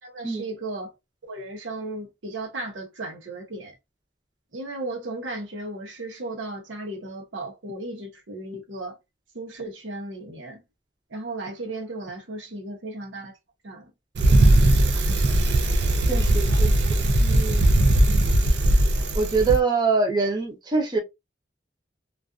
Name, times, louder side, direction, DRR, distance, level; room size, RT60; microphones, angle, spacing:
voice 1, 0.0-0.9 1.2-3.7 4.5-9.0 9.3-10.6 11.1-13.3 13.6-13.8, right 2 dB, 90° right, 0.9 m, -35 dB
Bicycle, 14.2-19.6, right 1 dB, 60° right, 0.5 m, -19 dB
voice 2, 16.1-16.7 17.2-17.8 19.1-21.0, right 4 dB, 25° right, 0.7 m, -24 dB
2.5 x 2.4 x 2.4 m
head